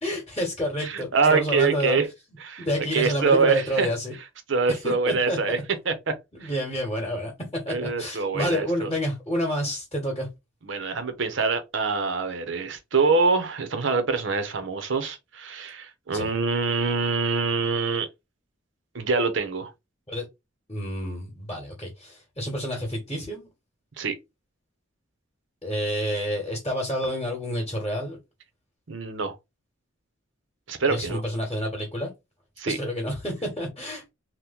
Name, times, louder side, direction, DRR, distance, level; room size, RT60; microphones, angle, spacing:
voice 1, 0.0-2.0 2.6-4.1 4.7-5.6 6.4-10.3 16.1-16.3 20.1-20.2 20.7-23.5 25.6-28.2 30.9-32.1 32.7-34.0, equal, 20° left, 1.0 m, -29 dB
voice 2, 0.8-2.1 2.4-2.7 2.9-3.9 4.5-5.6 5.9-6.1 6.4-6.5 7.7-8.9 10.6-18.1 18.9-19.7 24.0-24.1 28.9-29.3 30.7-31.2 32.6-32.8, right 4 dB, 65° right, 0.7 m, -25 dB
2.9 x 2.1 x 3.4 m
head